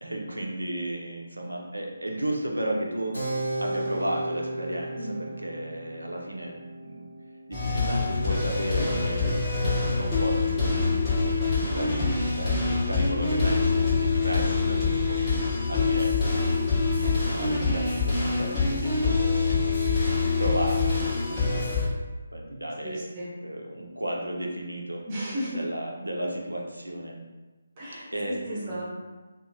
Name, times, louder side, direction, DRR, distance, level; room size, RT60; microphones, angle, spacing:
voice 1, 0.0-3.2 3.6-7.0 7.5-16.6 17.0-19.7 20.4-21.7 22.3-23.1 23.4-25.0 25.5-27.2 28.1-28.8, right 1 dB, 90° right, 0 dB, 0.5 m, -34 dB
Keyboard (musical), 3.1-9.3, right 1 dB, 80° left, 0.6 m, -36 dB
voice 2, 5.0-5.3 22.8-23.3 25.1-25.6 27.8-28.3 28.7-28.8, equal, 30° right, -6 dB, 0.8 m, -34 dB
sound 1, 7.5-21.8, left 4 dB, 15° left, 1.3 m, -25 dB
2.9 x 2.0 x 2.5 m, 1.2 s
figure-of-eight pair, 150°, 0 cm